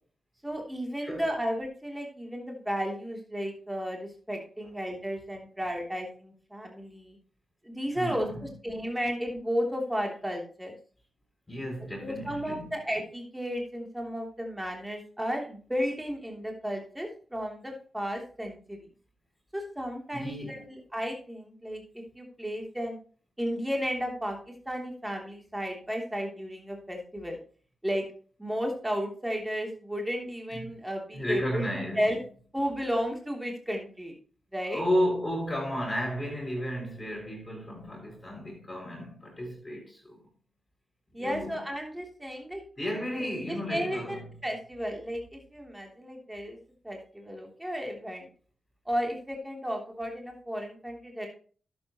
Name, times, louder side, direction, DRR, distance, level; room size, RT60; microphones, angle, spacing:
voice 1, 0.4-7.2 7.6-10.8 12.0-18.8 19.5-23.0 23.4-24.4 24.6-27.4 27.8-28.0 28.4-31.6 31.9-32.2 32.5-34.1 34.5-34.8 41.1-42.6 43.2-46.6 46.8-48.3 48.9-51.3, equal, 10° right, 3.2 m, -33 dB
voice 2, 7.9-8.4 11.5-12.6 20.1-20.7 30.6-30.7 31.1-32.1 34.7-40.2 41.2-41.5 42.8-44.2, equal, 25° left, 5.8 m, -33 dB
11.5 x 8.8 x 3.1 m
supercardioid pair, 45°, 0 cm